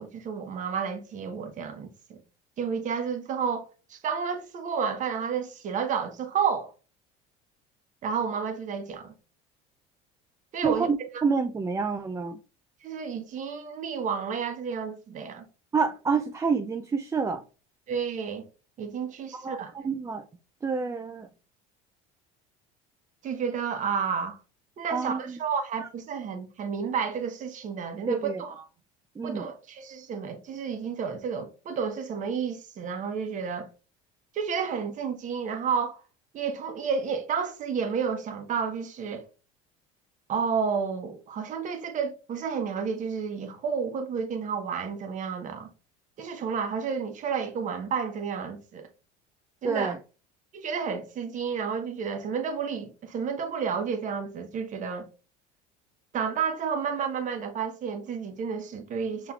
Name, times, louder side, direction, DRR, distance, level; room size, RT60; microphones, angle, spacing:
voice 1, 0.0-2.2 2.6-6.7 8.0-9.1 10.5-10.9 12.8-15.5 17.9-18.5 18.8-19.7 23.2-24.4 24.8-28.6 29.2-33.7 34.3-36.0 36.3-39.3 40.3-45.7 46.2-48.9 49.6-49.9 50.5-55.1 56.1-59.3, right 6 dB, 40° right, 1.0 m, -31 dB
voice 2, 10.6-12.4 15.7-17.4 19.3-20.2 20.6-21.3 24.9-25.4 28.1-28.4 29.2-29.5 49.6-50.0, right 5 dB, 15° right, 0.4 m, -28 dB
5.5 x 3.2 x 2.4 m
supercardioid pair, 95°, 19 cm